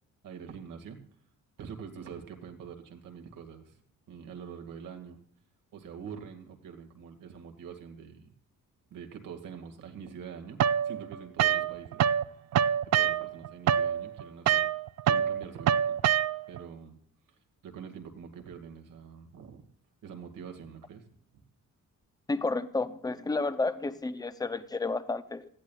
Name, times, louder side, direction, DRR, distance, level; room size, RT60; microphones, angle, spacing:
voice 1, 0.2-1.0 1.6-3.8 4.1-5.2 5.7-8.3 8.9-12.1 12.9-14.7 15.0-16.0 16.5-17.0 17.3-17.4 17.6-19.6 20.0-21.0 21.3-21.4, right 7 dB, 80° right, 5 dB, 2.1 m, -45 dB
sound 1, 10.6-12.2 12.5-16.6, right 9 dB, 55° right, 0.4 m, -26 dB
voice 2, 22.3-25.5, left 3 dB, 10° left, 12 dB, 0.5 m, -31 dB
18.5 x 14.0 x 2.4 m, 0.64 s
cardioid pair, 165°, 32 cm